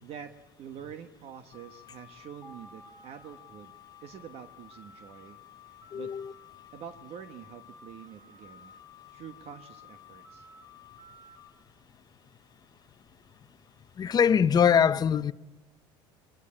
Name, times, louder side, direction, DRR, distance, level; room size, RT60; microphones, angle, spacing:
voice 1, 0.0-3.7 4.0-5.4 5.9-6.1 6.7-8.7 9.1-10.5, right 8 dB, 55° right, 1.2 m, -46 dB
sound 1, 1.5-11.5, left 7 dB, 75° right, 7.2 m, -53 dB
sound 2, 2.4-5.4, right 2 dB, 10° right, 5.3 m, -59 dB
voice 2, 5.9-6.3 14.0-15.3, left 7 dB, 35° left, 0.8 m, -23 dB
22.5 x 22.0 x 8.6 m
hypercardioid pair, 85°, 12 cm